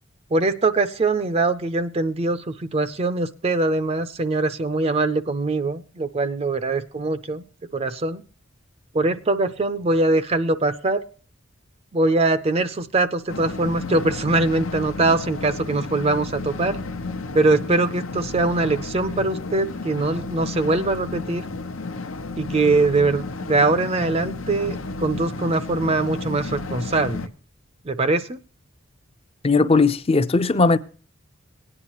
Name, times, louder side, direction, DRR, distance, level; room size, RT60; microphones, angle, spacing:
voice 1, 0.3-7.4 7.7-8.2 8.9-11.0 11.9-16.8 17.3-21.4 22.4-27.2 27.9-28.4, right 2 dB, 30° right, 0.5 m, -22 dB
sound 1, 13.3-27.3, left 3 dB, 85° left, 0.9 m, -32 dB
voice 2, 29.4-30.8, left 3 dB, 30° left, 0.5 m, -18 dB
17.5 x 9.8 x 3.0 m
head